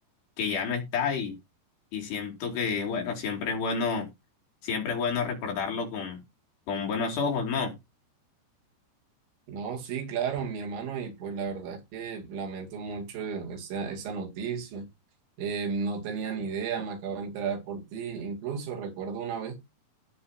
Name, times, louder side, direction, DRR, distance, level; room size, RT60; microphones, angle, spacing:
voice 1, 0.4-1.4 1.9-4.1 4.6-6.2 6.7-7.7, left 5 dB, 70° left, 4.6 m, -29 dB
voice 2, 9.5-14.9 15.4-19.6, right 6 dB, 85° right, 4.6 m, -33 dB
16.5 x 5.7 x 2.8 m
omnidirectional pair, 5.1 m